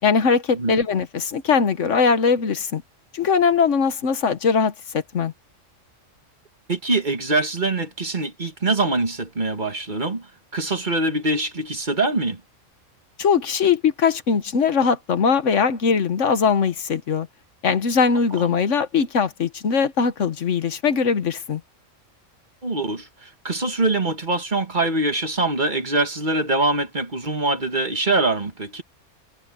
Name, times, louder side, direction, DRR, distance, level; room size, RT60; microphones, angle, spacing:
voice 1, 0.0-2.8 3.1-4.7 5.1-5.3 13.2-17.3 17.6-21.6, left 6 dB, 70° left, 1.4 m, -20 dB
voice 2, 6.7-12.4 18.4-18.5 22.6-28.8, right 2 dB, 35° right, 1.8 m, -24 dB
omnidirectional pair, 1.3 m